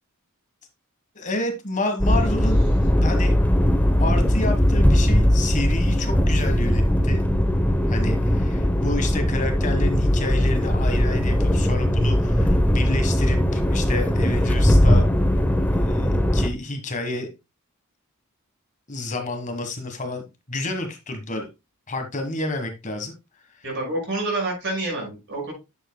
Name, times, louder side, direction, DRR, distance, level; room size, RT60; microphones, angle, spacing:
voice 1, 1.1-2.6 3.0-3.3 4.0-7.2 7.9-15.0 15.7-17.3 18.9-21.5 21.9-23.1, left 2 dB, 35° left, 6 dB, 1.4 m, -29 dB
sound 1, 2.0-16.5, equal, 5° left, 0.8 m, -19 dB
voice 2, 23.6-25.5, right 2 dB, 55° right, -1 dB, 5.7 m, -27 dB
10.0 x 7.4 x 2.2 m, 0.24 s
head